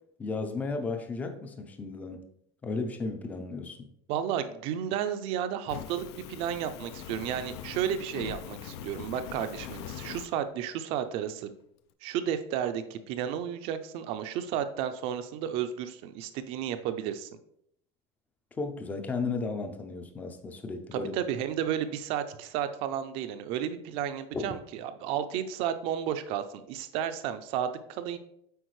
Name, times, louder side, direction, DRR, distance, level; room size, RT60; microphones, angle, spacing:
voice 1, 0.2-2.2 2.6-3.9 18.6-21.1 24.3-24.4, left 4 dB, 10° left, 6 dB, 0.4 m, -34 dB
voice 2, 4.1-11.5 12.0-17.3 20.9-28.2, right 9 dB, 40° right, 10 dB, 0.5 m, -32 dB
Fire, 5.7-10.3, left 10 dB, 80° left, 0.5 m, -42 dB
7.9 x 4.8 x 3.1 m, 0.74 s
cardioid pair, 180°, 14 cm